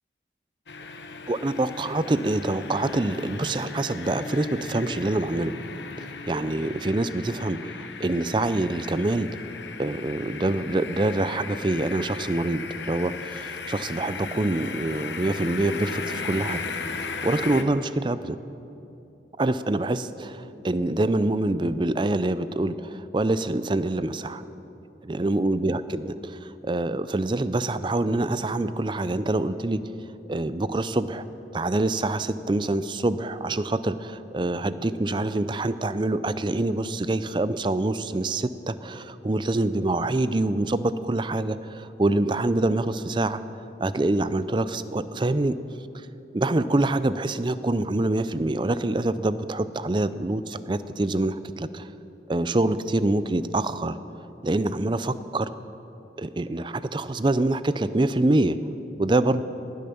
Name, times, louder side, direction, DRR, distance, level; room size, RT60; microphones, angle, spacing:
sound 1, 0.7-17.6, left 4 dB, 80° left, 1.0 m, -36 dB
voice 1, 1.3-5.5 6.0-9.3 9.8-16.7 17.1-18.4 19.4-24.4 25.1-29.8 30.3-31.2 31.5-43.4 43.8-45.6 45.9-46.1 46.3-51.9 52.3-54.0 54.4-55.5 56.2-58.6 59.0-59.4, right 2 dB, 25° right, 14 dB, 0.5 m, -25 dB
19.0 x 10.5 x 7.0 m, 2.9 s
head